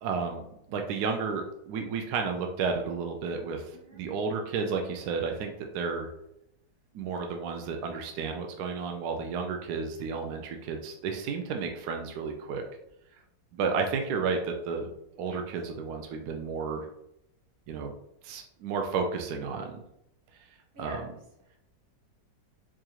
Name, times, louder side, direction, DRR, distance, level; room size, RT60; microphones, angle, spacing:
voice 1, 0.0-6.1 6.9-12.6 13.5-14.9 15.2-16.9 17.7-17.9 18.2-19.8 20.8-21.1, right 5 dB, 70° right, 3 dB, 1.0 m, -32 dB
voice 2, 3.7-4.0 13.7-13.8 15.3-15.4 20.7-21.0 21.5-21.6, right 1 dB, 35° right, -3 dB, 1.1 m, -48 dB
4.7 x 2.5 x 2.9 m, 0.80 s
omnidirectional pair, 2.0 m